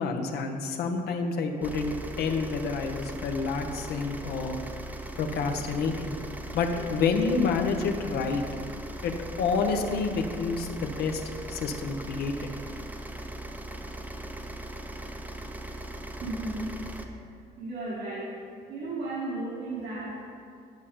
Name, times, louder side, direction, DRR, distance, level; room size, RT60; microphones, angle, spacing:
voice 1, 0.0-4.6 5.2-6.1 6.5-8.4 9.0-11.2 11.5-12.5, left 4 dB, 70° left, 4 dB, 0.9 m, -28 dB
sound 1, 1.6-17.0, right 1 dB, 10° right, 0.7 m, -39 dB
voice 2, 16.2-17.3 17.6-18.4 18.7-20.2, right 2 dB, 80° right, -7 dB, 1.8 m, -35 dB
9.4 x 5.6 x 5.1 m, 2.3 s
cardioid pair, 110°, 17 cm